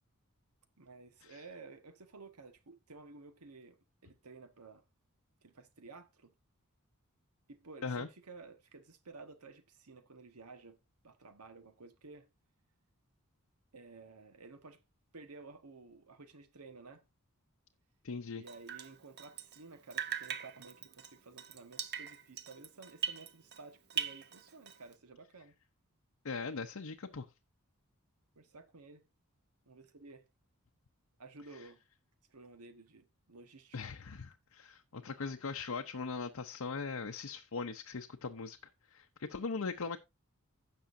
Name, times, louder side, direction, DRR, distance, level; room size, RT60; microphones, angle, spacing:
voice 1, 0.8-4.8 5.4-6.3 7.5-10.8 11.0-12.3 13.7-14.8 15.1-17.0 18.4-25.5 28.3-29.0 29.6-30.2 31.2-31.8 32.3-33.8, right 3 dB, 90° right, 1.3 m, -53 dB
voice 2, 18.0-18.4 26.2-27.3 33.7-38.6 38.9-40.0, left 4 dB, 70° left, 0.7 m, -40 dB
Drip, 18.5-19.7 19.9-23.6 23.9-24.9, right 8 dB, 50° right, 0.8 m, -41 dB
16.0 x 6.1 x 2.6 m
head